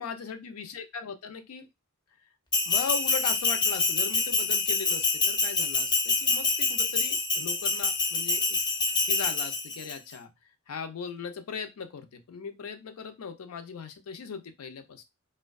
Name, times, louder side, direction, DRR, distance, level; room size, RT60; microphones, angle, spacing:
voice 1, 0.0-1.7 2.7-8.6 9.1-10.3 10.7-15.0, left 6 dB, 80° left, 8 dB, 0.4 m, -38 dB
Bell, 2.5-9.9, left 3 dB, 20° left, 0.4 m, -26 dB
2.6 x 2.2 x 2.2 m, 0.21 s
head